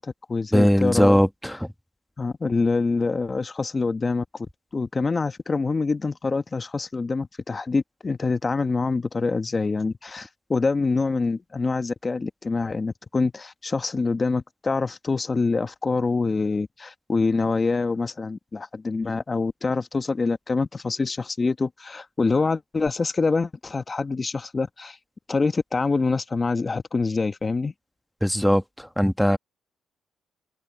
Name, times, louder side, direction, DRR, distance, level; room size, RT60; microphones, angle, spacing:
voice 1, 0.0-1.2 2.2-25.0 25.3-27.7, left 4 dB, 30° left, 1.2 m, -25 dB
voice 2, 0.5-1.7 28.2-29.4, equal, ahead, 1.3 m, -20 dB
cardioid pair, 90°, 0 cm